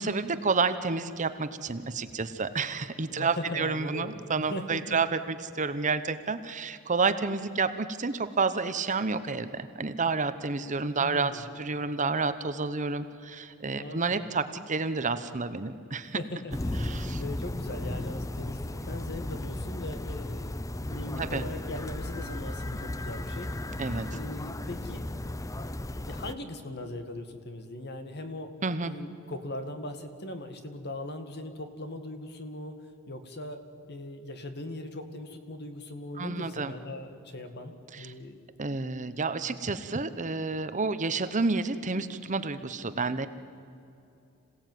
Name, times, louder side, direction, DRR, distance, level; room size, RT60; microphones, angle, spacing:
voice 1, 0.0-16.2 16.8-17.2 21.2-21.4 23.8-24.1 28.6-28.9 36.2-36.7 37.9-38.1 38.6-43.3, right 4 dB, 35° right, 11 dB, 0.9 m, -30 dB
voice 2, 3.1-4.1 4.5-5.0 11.0-11.4 13.8-14.2 16.0-23.5 24.1-25.1 26.1-28.5 28.8-38.4, left 1 dB, 50° left, 8 dB, 2.1 m, -40 dB
sound 1, 16.5-26.3, left 1 dB, 15° left, 0.6 m, -35 dB
26.5 x 17.0 x 9.3 m, 2.7 s
head